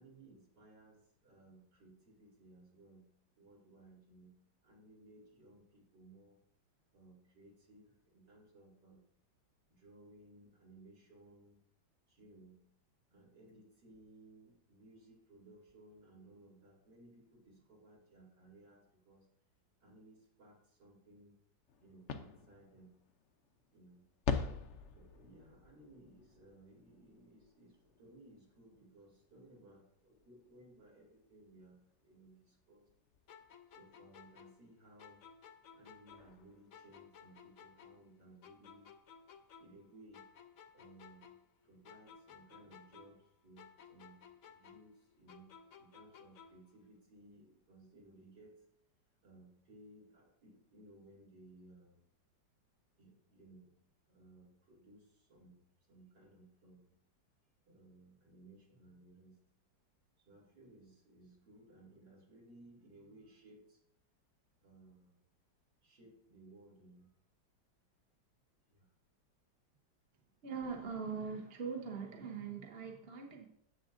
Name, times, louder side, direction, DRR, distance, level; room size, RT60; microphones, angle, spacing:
voice 1, 0.0-3.1 3.4-4.3 4.6-6.4 6.9-9.0 9.7-11.6 12.1-12.6 13.1-19.3 19.8-21.4 21.8-23.0 23.7-24.0 24.9-32.9 33.7-35.2 35.7-38.9 39.6-40.3 40.7-41.3 41.6-45.5 45.8-48.7 49.2-52.1 53.0-53.8 54.1-56.9 57.7-59.4 60.2-63.8 64.6-65.2 65.8-67.2 68.7-68.9, right 2 dB, 65° right, -4 dB, 3.0 m, -60 dB
sound 1, 21.7-34.1 35.3-35.4 35.8-35.9 36.1-37.3, left 6 dB, 85° left, 0.6 m, -46 dB
sound 2, 33.3-36.4 36.7-39.9 40.1-43.3 43.6-46.7, left 7 dB, 65° left, 0.9 m, -58 dB
voice 2, 70.4-73.5, right 5 dB, 40° right, 1 dB, 1.0 m, -42 dB
9.8 x 7.5 x 2.6 m, 0.66 s
omnidirectional pair, 2.0 m